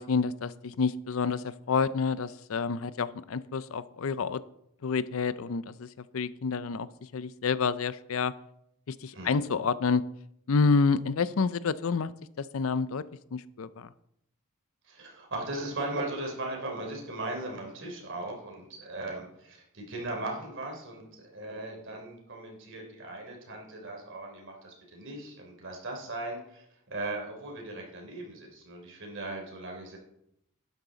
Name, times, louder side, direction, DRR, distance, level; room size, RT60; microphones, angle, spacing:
voice 1, 0.0-4.4 4.8-5.9 6.1-8.3 8.9-10.0 10.5-13.0 13.3-13.9, left 5 dB, 65° left, 16 dB, 0.5 m, -28 dB
voice 2, 14.9-30.0, right 2 dB, 60° right, 1 dB, 3.3 m, -38 dB
12.0 x 9.6 x 4.0 m, 0.77 s
head